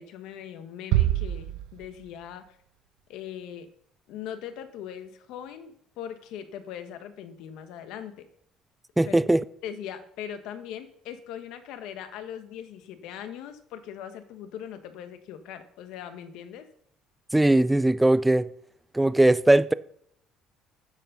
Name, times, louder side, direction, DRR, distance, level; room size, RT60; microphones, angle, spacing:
voice 1, 0.0-2.6 3.1-3.7 4.1-8.3 9.0-9.2 9.6-16.7, left 9 dB, 80° left, 1.1 m, -40 dB
sound 1, 0.9-2.5, right 14 dB, 85° right, 0.5 m, -27 dB
voice 2, 9.0-9.4 17.3-18.5 18.9-19.7, right 1 dB, 10° right, 0.4 m, -20 dB
9.4 x 7.1 x 5.4 m
cardioid pair, 125°, 0 cm